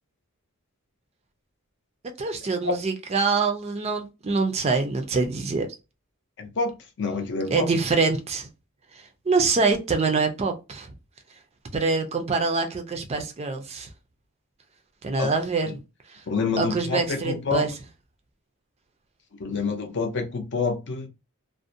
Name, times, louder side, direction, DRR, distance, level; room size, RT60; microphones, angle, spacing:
voice 1, 2.2-5.7 7.5-8.5 8.9-10.9 11.7-13.9 15.0-15.7 16.1-16.2 16.6-17.7, right 4 dB, 30° right, 0.4 m, -25 dB
voice 2, 6.4-7.7 15.2-15.3 15.7-15.8 16.3-17.7 19.4-21.1, left 4 dB, 55° left, 0.5 m, -27 dB
2.4 x 2.1 x 2.6 m
head